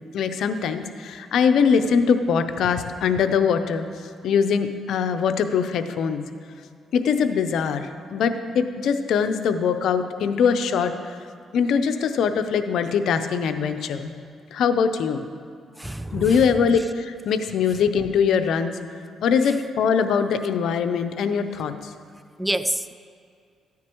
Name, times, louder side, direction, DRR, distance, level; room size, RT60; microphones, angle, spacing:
voice 1, 0.1-3.9 4.2-6.2 6.9-11.2 11.5-14.1 14.5-15.2 16.1-18.8 19.2-21.9, left 6 dB, 75° left, 9 dB, 0.6 m, -22 dB
voice 2, 15.8-16.4 22.4-23.0, right 1 dB, 5° right, 13 dB, 0.3 m, -27 dB
13.5 x 9.6 x 3.0 m, 2.3 s
cardioid pair, 90°, 0 cm